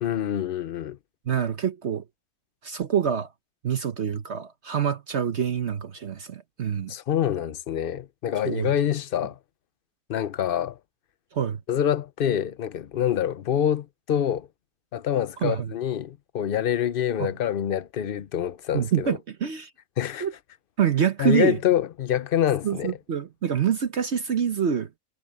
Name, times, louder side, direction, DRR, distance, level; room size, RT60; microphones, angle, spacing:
voice 1, 0.0-1.0 6.9-9.4 10.1-10.8 11.7-14.5 14.9-19.2 20.0-20.3 21.2-22.9, left 10 dB, 50° left, 0.7 m, -26 dB
voice 2, 1.3-2.0 2.6-3.3 3.6-6.9 8.4-8.7 11.3-11.6 15.4-15.7 17.2-17.3 18.7-19.7 20.2-20.3 20.8-21.6 22.6-24.9, right 8 dB, 55° right, 1.1 m, -26 dB
omnidirectional pair, 1.6 m